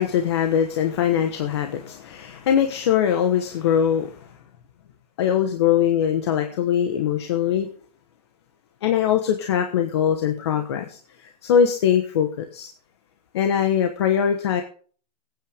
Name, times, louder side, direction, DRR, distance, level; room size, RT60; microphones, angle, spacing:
voice 1, 0.0-4.2 5.2-7.7 8.8-12.7 13.3-14.6, left 8 dB, 40° left, 6 dB, 1.3 m, -22 dB
20.5 x 9.2 x 3.6 m, 0.43 s
hypercardioid pair, 180°, 20 cm